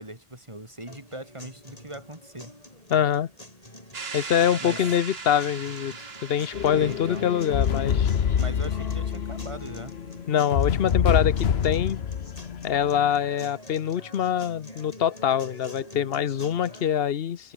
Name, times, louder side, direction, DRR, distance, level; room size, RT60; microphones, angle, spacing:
voice 1, 0.0-2.5 4.6-4.8 6.7-7.3 8.4-9.9, right 1 dB, 30° right, 5.2 m, -40 dB
sound 1, 0.9-16.9, left 1 dB, 35° left, 7.1 m, -46 dB
voice 2, 2.9-3.3 4.1-5.9 6.2-8.1 10.3-12.0 12.6-17.5, left 9 dB, 70° left, 1.0 m, -24 dB
sound 2, 3.9-8.7, right 4 dB, 75° right, 2.0 m, -40 dB
sound 3, 6.5-13.3, left 8 dB, 85° left, 1.2 m, -26 dB
omnidirectional pair, 1.0 m